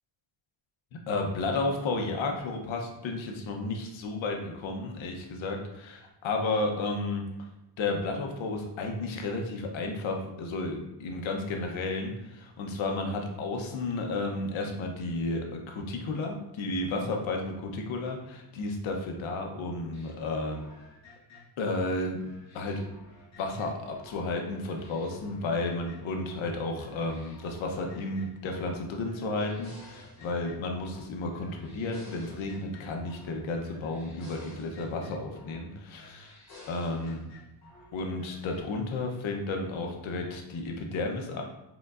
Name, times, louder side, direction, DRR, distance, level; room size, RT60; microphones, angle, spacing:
voice 1, 1.1-7.5 7.8-20.6 21.6-22.8 23.4-36.4 36.7-37.2 37.9-41.4, left 2 dB, 80° left, 2 dB, 0.9 m, -32 dB
sound 1, 19.9-24.2 24.5-26.5 26.8-28.8 29.0-31.1 31.3-33.4 33.6-35.6 35.9-37.9 38.2-38.6, left 2 dB, 35° left, 1.0 m, -53 dB
5.0 x 3.7 x 2.5 m, 0.91 s
cardioid pair, 175°, 46 cm